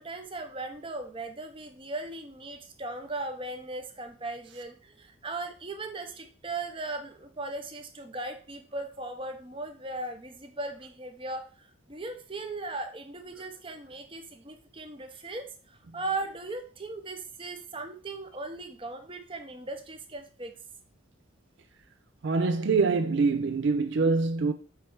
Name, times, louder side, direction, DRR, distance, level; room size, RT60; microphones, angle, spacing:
voice 1, 0.0-20.5, right 2 dB, 25° right, 0.8 m, -38 dB
voice 2, 22.2-24.5, right 4 dB, 65° right, 0.4 m, -24 dB
8.3 x 3.3 x 4.6 m
head